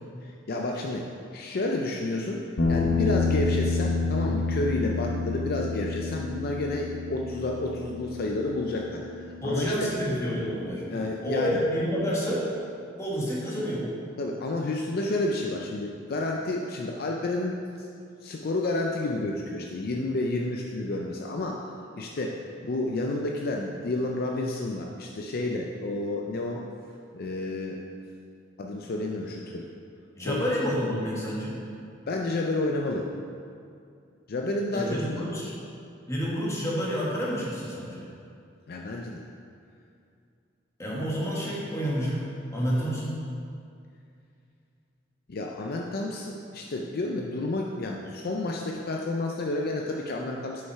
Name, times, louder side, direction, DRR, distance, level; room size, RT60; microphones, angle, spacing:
voice 1, 0.2-1.1 1.3-2.4 2.7-9.9 10.9-11.6 14.2-17.9 18.2-21.7 22.0-26.6 27.1-27.8 28.6-29.7 30.2-30.5 32.1-33.1 34.3-35.3 38.7-39.2 45.3-50.6, left 2 dB, 50° left, 0 dB, 0.5 m, -30 dB
sound 1, 2.6-10.9, left 3 dB, 65° left, 0.9 m, -29 dB
voice 2, 9.4-10.8 11.2-12.4 13.0-13.9 30.2-31.6 34.7-35.5 36.1-38.1 40.8-42.3 42.5-43.2, equal, 15° left, -6 dB, 1.5 m, -29 dB
6.5 x 5.5 x 4.6 m, 2.4 s
head